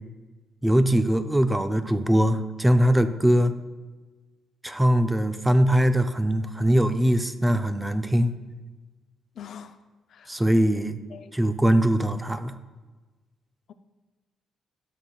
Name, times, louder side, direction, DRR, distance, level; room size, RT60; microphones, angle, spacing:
voice 1, 0.6-3.5 4.6-8.3 10.3-11.0 11.3-12.5, equal, 10° right, 9 dB, 0.5 m, -21 dB
voice 2, 9.4-9.8 10.1-10.4 10.8-11.3 13.7-13.8, left 8 dB, 65° left, 10 dB, 0.4 m, -44 dB
13.0 x 6.6 x 2.3 m, 1.3 s
cardioid pair, 90°, 0 cm